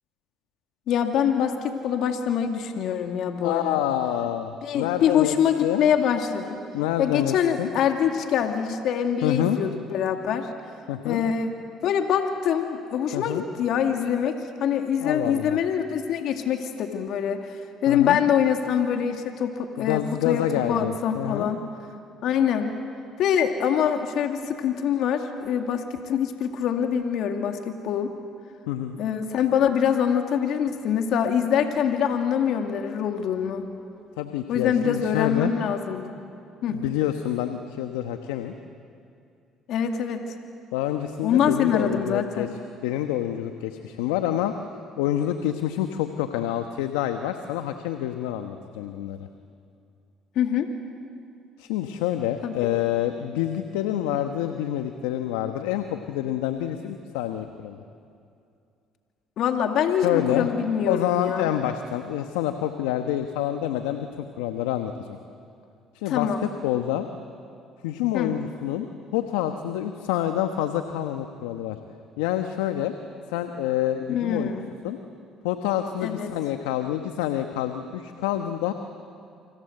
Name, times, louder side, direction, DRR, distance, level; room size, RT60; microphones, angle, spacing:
voice 1, 0.9-3.8 4.6-6.6 7.0-10.5 11.0-11.6 11.8-21.6 22.2-22.8 23.2-28.1 29.0-33.7 34.5-36.1 36.6-36.8 39.7-40.3 41.2-42.6 50.4-50.7 52.4-52.7 59.4-61.5 66.1-66.4 68.1-68.4 74.1-74.7 76.0-76.3, left 8 dB, 70° left, 5 dB, 2.2 m, -24 dB
voice 2, 3.4-5.8 6.7-7.7 9.2-9.6 10.9-11.2 13.1-13.4 15.0-15.6 17.9-18.2 19.8-21.5 28.7-29.0 34.2-35.5 36.6-38.5 40.7-42.5 42.8-44.5 45.0-49.3 51.6-57.8 60.0-60.5 60.8-65.2 65.9-67.1 67.8-68.9 69.1-71.8 72.2-72.9 73.3-74.5 74.8-75.0 75.4-78.7, left 12 dB, 85° left, 7 dB, 1.1 m, -27 dB
28.0 x 26.0 x 7.9 m, 2.5 s
supercardioid pair, 65°, 0 cm